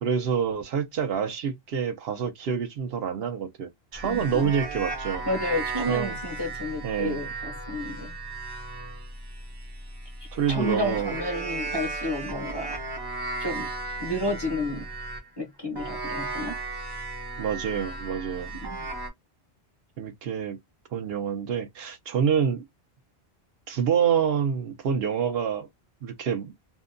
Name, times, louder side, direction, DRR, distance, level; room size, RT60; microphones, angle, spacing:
voice 1, 0.0-5.3 5.9-6.2 6.8-7.2 10.3-11.1 17.4-18.5 20.0-20.6 20.9-22.6 23.7-25.7 26.0-26.5, right 7 dB, 70° right, 0.8 m, -27 dB
sound 1, 3.9-15.3 15.8-19.1, right 3 dB, 30° right, 0.5 m, -35 dB
voice 2, 4.0-4.5 5.2-8.1 10.5-12.8 13.4-13.7 14.0-14.9 15.4-16.6 18.6-18.9, left 1 dB, 30° left, 0.6 m, -31 dB
2.6 x 2.1 x 2.4 m
omnidirectional pair, 1.1 m